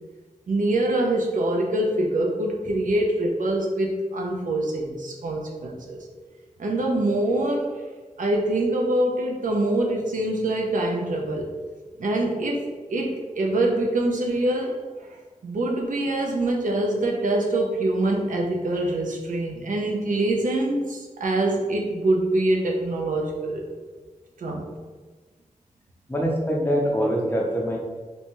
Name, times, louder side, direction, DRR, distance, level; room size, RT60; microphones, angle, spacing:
voice 1, 0.5-6.0 6.6-7.7 8.2-11.5 12.0-12.6 12.9-14.8 15.4-23.6 24.4-24.6, right 1 dB, 80° right, 0 dB, 0.5 m, -24 dB
voice 2, 26.1-27.8, equal, 15° left, -2 dB, 0.6 m, -24 dB
2.7 x 2.2 x 2.9 m, 1.3 s
wide cardioid pair, 85°, 13 cm